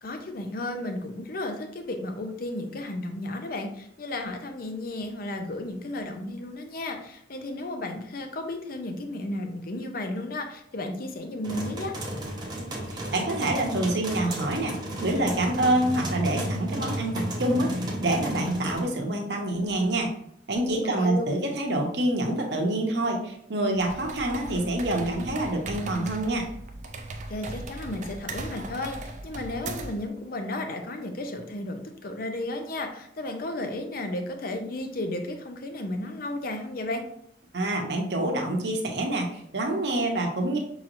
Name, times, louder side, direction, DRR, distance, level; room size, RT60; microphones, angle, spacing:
voice 1, 0.0-11.9 21.0-21.2 27.3-37.0, left 1 dB, 55° left, 5 dB, 0.6 m, -33 dB
sound 1, 11.4-18.8, equal, 25° right, 0.8 m, -33 dB
voice 2, 12.9-20.1 20.5-26.5 37.5-40.6, right 1 dB, 70° right, 2 dB, 0.8 m, -27 dB
sound 2, 23.7-30.1, right 2 dB, 45° right, 0.4 m, -38 dB
5.5 x 3.0 x 2.5 m, 0.72 s
head